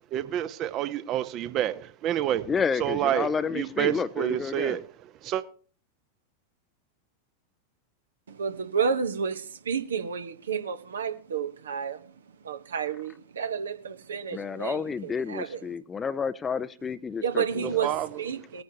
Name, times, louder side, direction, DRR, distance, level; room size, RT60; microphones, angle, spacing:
voice 1, 0.1-2.5 2.8-4.8 5.2-5.4 17.8-18.1, right 11 dB, 35° right, 0.9 m, -28 dB
voice 2, 2.5-4.8 14.3-17.9, left 6 dB, 20° left, 0.6 m, -30 dB
voice 3, 8.3-12.1 12.4-15.6 17.2-18.6, right 7 dB, 65° right, 1.1 m, -31 dB
20.0 x 9.5 x 2.8 m
figure-of-eight pair, 90°, 0 cm